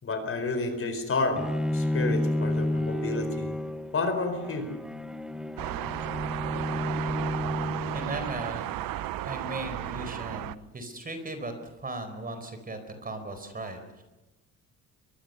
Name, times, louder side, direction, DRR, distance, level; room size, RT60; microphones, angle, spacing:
voice 1, 0.0-3.5 3.9-4.7, left 3 dB, 40° left, 8 dB, 4.5 m, -30 dB
Bowed string instrument, 1.4-8.4, left 1 dB, ahead, 1.1 m, -31 dB
sound 1, 5.6-10.6, right 14 dB, 70° right, 0.9 m, -34 dB
voice 2, 7.9-8.7 9.2-11.5 11.8-14.0, right 2 dB, 25° right, 8 dB, 4.5 m, -37 dB
23.0 x 23.0 x 6.9 m, 1.0 s
cardioid pair, 110°, 35 cm